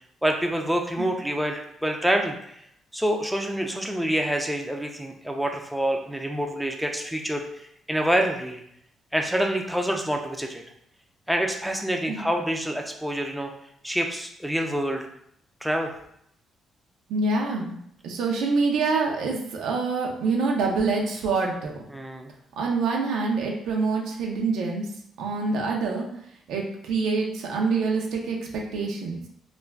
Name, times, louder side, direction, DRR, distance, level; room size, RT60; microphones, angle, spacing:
voice 1, 0.2-2.6 2.9-8.6 9.1-10.6 11.3-13.5 13.8-15.0 15.6-16.0 21.9-22.3, right 1 dB, ahead, 2 dB, 0.4 m, -27 dB
voice 2, 17.1-17.8 18.0-21.8 22.6-24.9 25.2-26.1 26.5-29.2, right 4 dB, 85° right, 0 dB, 0.5 m, -26 dB
2.4 x 2.2 x 3.3 m, 0.71 s
cardioid pair, 90°, 0 cm